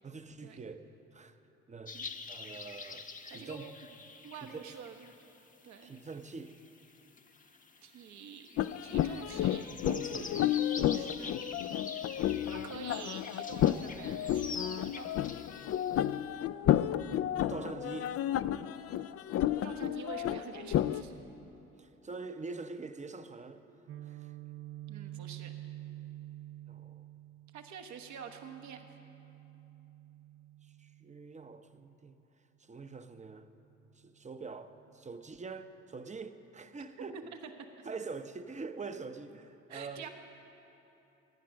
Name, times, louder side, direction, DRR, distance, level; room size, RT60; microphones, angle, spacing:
voice 1, 0.0-0.9 1.1-1.4 1.7-2.0 2.3-3.6 4.4-4.5 5.8-6.5 9.7-10.3 12.3-12.8 17.5-18.1 21.8-23.6 24.0-24.3 26.7-27.1 30.8-32.2 32.6-33.5 34.0-37.2 37.8-40.0, right 4 dB, 25° right, 0.8 m, -44 dB
sound 1, 1.9-16.1, left 4 dB, 25° left, 0.9 m, -47 dB
voice 2, 3.3-3.7 4.2-5.2 5.6-5.9 7.8-8.5 8.8-10.3 10.9-11.3 12.5-15.6 19.6-21.1 24.9-25.5 27.5-28.9 37.0-37.5 39.7-40.1, right 7 dB, 70° right, 1.2 m, -47 dB
sound 2, 8.6-21.0, left 11 dB, 50° left, 0.4 m, -31 dB
Guitar, 23.9-31.7, right 14 dB, 45° right, 0.4 m, -48 dB
14.5 x 9.3 x 6.3 m
supercardioid pair, 60°, 30 cm